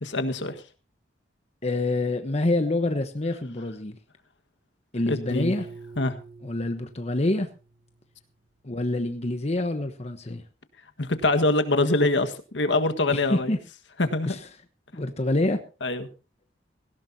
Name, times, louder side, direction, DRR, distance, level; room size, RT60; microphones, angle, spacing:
voice 1, 0.0-0.6 5.1-5.5 6.0-6.2 11.0-13.5 14.0-14.4 15.8-16.1, left 2 dB, 80° left, 8 dB, 1.6 m, -24 dB
voice 2, 1.6-4.0 4.9-5.7 6.4-7.5 8.6-10.4 13.1-13.6 14.2-14.4 14.9-15.6, left 2 dB, 35° left, 7 dB, 1.1 m, -26 dB
Piano, 5.3-8.2, right 3 dB, 65° right, 5.0 m, -45 dB
18.0 x 16.5 x 2.8 m, 0.33 s
head